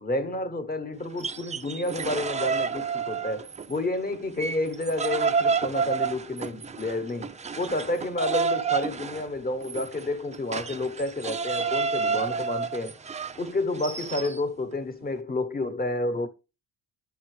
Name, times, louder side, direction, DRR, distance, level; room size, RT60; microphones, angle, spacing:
voice 1, 0.0-13.0 13.4-16.3, left 2 dB, 20° left, 1.1 m, -30 dB
sound 1, 1.1-3.8 4.1-14.4, right 5 dB, 15° right, 0.3 m, -30 dB
9.3 x 5.5 x 3.2 m
cardioid pair, 115°, 45 cm